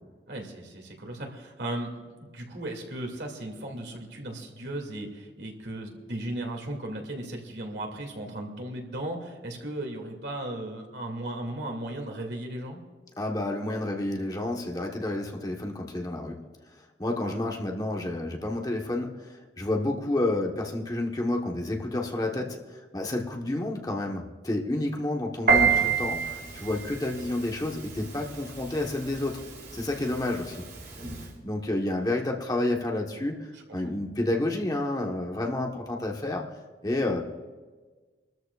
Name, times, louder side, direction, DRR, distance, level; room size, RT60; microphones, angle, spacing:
voice 1, 0.3-12.8 22.2-22.5 25.7-25.9 33.5-33.9, right 1 dB, 80° right, 1 dB, 2.3 m, -36 dB
voice 2, 13.2-16.4 17.0-22.6 22.9-29.4 29.7-30.6 31.4-36.5 36.8-37.2, left 1 dB, 20° left, 0 dB, 1.1 m, -30 dB
Piano, 25.5-31.3, right 6 dB, 60° right, 3.0 m, -29 dB
26.5 x 13.5 x 2.4 m, 1.4 s
head